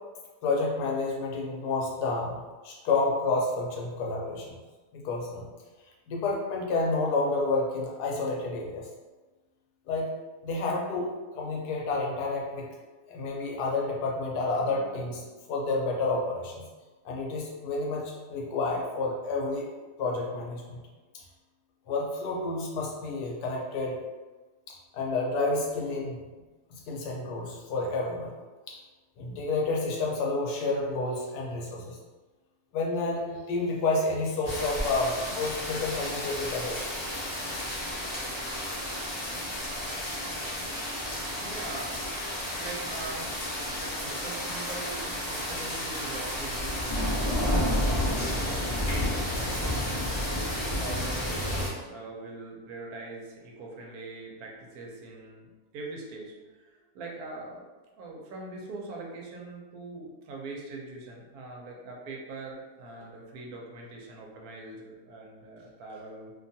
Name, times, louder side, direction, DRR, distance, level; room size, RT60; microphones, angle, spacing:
voice 1, 0.4-4.6 4.9-5.5 6.1-8.9 9.9-10.1 10.4-12.8 13.1-16.7 17.0-19.7 20.0-20.8 21.9-24.0 24.7-26.2 26.7-28.3 28.7-28.8 29.2-32.0 32.7-37.8, left 3 dB, 85° left, -1 dB, 1.2 m, -30 dB
sound 1, 34.4-51.7, left 1 dB, 45° left, 0.3 m, -31 dB
voice 2, 41.3-42.1 42.6-43.3 43.7-47.8 48.0-57.6 58.0-66.3, right 3 dB, 80° right, -1 dB, 1.1 m, -42 dB
2.8 x 2.2 x 2.6 m, 1.3 s
omnidirectional pair, 1.6 m